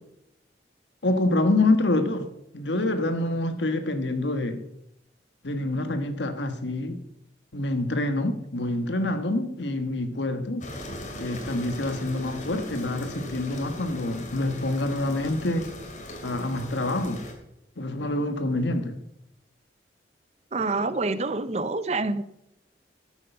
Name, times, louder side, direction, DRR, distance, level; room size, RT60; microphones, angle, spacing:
voice 1, 1.0-4.6 5.4-7.0 7.5-10.7 11.2-15.8 16.2-17.3 17.8-19.0, left 2 dB, 80° left, 1.4 m, -26 dB
sound 1, 10.6-17.3, left 1 dB, 45° left, 2.5 m, -39 dB
voice 2, 20.5-22.2, right 3 dB, 35° right, 0.6 m, -27 dB
13.0 x 7.7 x 5.6 m
head